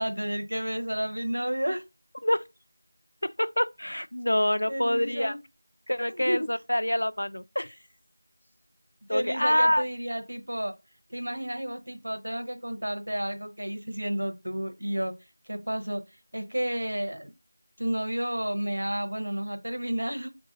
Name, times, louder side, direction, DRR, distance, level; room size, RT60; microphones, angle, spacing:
voice 1, 0.0-1.8 4.7-5.4 6.2-6.5 9.1-10.7 11.1-15.1 15.5-16.0 16.3-17.3 17.8-20.3, equal, 80° right, 0.8 m, -31 dB
voice 2, 3.2-5.4 5.9-7.8 9.1-9.8, left 1 dB, 75° left, 0.3 m, -26 dB
3.7 x 2.4 x 3.8 m
figure-of-eight pair, 175°, 0 cm